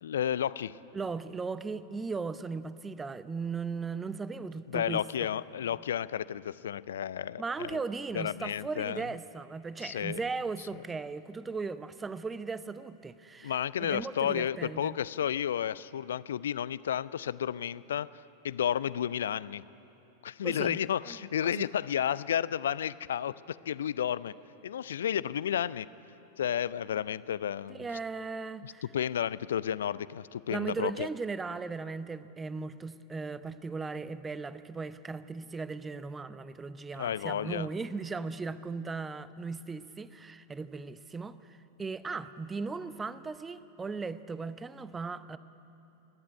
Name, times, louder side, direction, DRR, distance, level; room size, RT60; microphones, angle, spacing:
voice 1, 0.0-0.8 4.7-7.8 8.1-9.0 9.8-10.2 13.4-18.1 18.4-19.6 20.2-24.3 24.6-25.9 26.4-27.9 28.6-31.1 37.0-37.7, left 9 dB, 65° left, 19 dB, 0.4 m, -32 dB
voice 2, 0.9-5.3 7.4-13.5 13.8-15.0 20.4-20.8 21.0-21.2 21.4-21.7 27.7-28.9 30.5-45.4, right 4 dB, 15° right, 15 dB, 0.7 m, -37 dB
27.5 x 11.0 x 9.5 m, 2.9 s
figure-of-eight pair, 90°, 0 cm